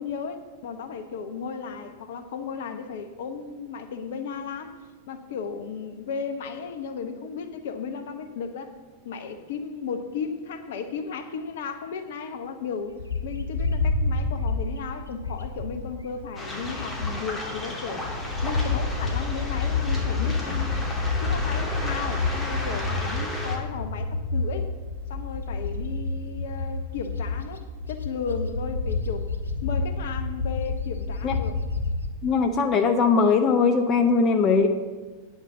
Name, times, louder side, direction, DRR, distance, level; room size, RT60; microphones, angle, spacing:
voice 1, 0.0-4.8 5.1-8.7 9.0-18.1 18.4-20.8 21.2-24.7 25.1-27.6 27.9-29.3 29.6-31.5, left 6 dB, 55° left, 8 dB, 1.0 m, -35 dB
Bird, 13.0-17.5 17.9-32.1, left 3 dB, 80° left, 1.1 m, -29 dB
Waves surf, 16.4-23.6, left 1 dB, 15° left, 2.8 m, -34 dB
voice 2, 32.2-34.7, left 5 dB, 30° left, 6 dB, 0.9 m, -20 dB
9.4 x 6.6 x 8.0 m, 1.4 s
figure-of-eight pair, 90°, 0 cm